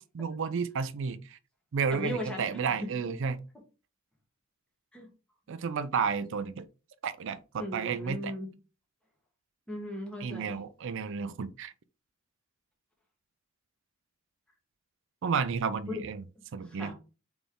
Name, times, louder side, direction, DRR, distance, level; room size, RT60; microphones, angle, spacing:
voice 1, 0.1-1.4 1.7-3.4 5.5-6.6 7.0-8.3 10.2-11.7 15.2-16.2 16.5-16.9, right 6 dB, 65° right, 0.4 m, -32 dB
voice 2, 1.9-2.9 4.9-5.1 7.6-8.5 9.7-10.6 15.9-16.0 16.6-16.9, left 1 dB, 5° left, 1.3 m, -37 dB
4.1 x 3.5 x 3.6 m
head